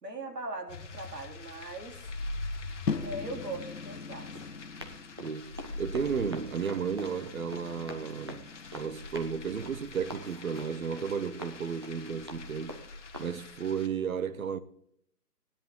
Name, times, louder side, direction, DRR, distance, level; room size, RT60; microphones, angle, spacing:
voice 1, 0.0-2.1 3.0-4.4, right 2 dB, 80° right, 3.4 m, -40 dB
sound 1, 0.7-13.9, left 2 dB, 45° left, 1.4 m, -44 dB
Run, 2.8-13.4, equal, 15° right, 0.6 m, -47 dB
sound 2, 2.9-9.1, left 5 dB, 85° left, 1.1 m, -41 dB
voice 2, 5.2-8.5 8.7-12.8 13.2-14.6, right 6 dB, 60° right, 1.1 m, -33 dB
16.0 x 10.5 x 3.8 m
figure-of-eight pair, 150°, 48 cm